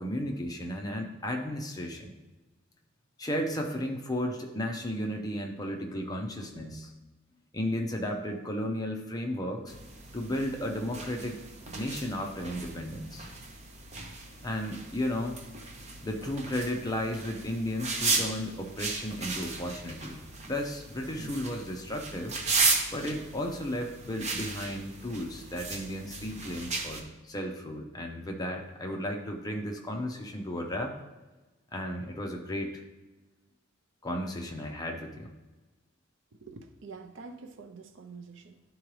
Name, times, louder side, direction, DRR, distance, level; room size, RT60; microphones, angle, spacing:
voice 1, 0.0-2.1 3.2-6.9 7.5-9.8 10.1-11.4 11.7-13.3 14.4-15.4 16.0-22.4 22.9-30.9 31.7-32.8 34.0-35.3, left 1 dB, 20° left, 2 dB, 0.7 m, -34 dB
sound 1, 9.7-27.0, right 3 dB, 35° right, 0.8 m, -35 dB
voice 2, 36.4-38.6, right 4 dB, 65° right, 6 dB, 0.6 m, -46 dB
11.5 x 3.8 x 3.1 m, 1.2 s
head